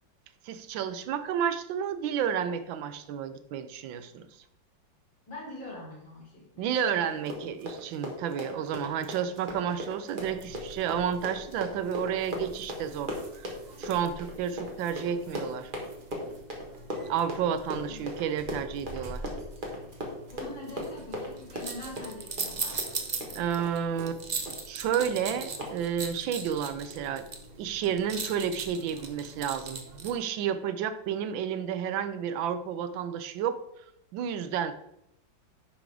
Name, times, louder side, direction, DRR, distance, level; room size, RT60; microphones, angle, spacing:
voice 1, 0.4-4.3 6.6-13.5 13.8-15.7 17.1-19.2 23.3-27.3 27.6-33.6 34.1-34.7, right 8 dB, 85° right, 12 dB, 1.4 m, -31 dB
voice 2, 5.3-6.7 7.0-7.3 17.8-18.0 20.3-22.8, left 1 dB, 85° left, -5 dB, 4.0 m, -43 dB
Run, 7.1-23.7 24.0-24.2 24.5-24.7 25.0-25.1 25.6-25.7, equal, 30° right, 1.4 m, -38 dB
sound 1, 10.2-30.2, right 4 dB, 60° right, 0.4 m, -41 dB
10.5 x 3.8 x 4.6 m, 0.78 s
omnidirectional pair, 2.0 m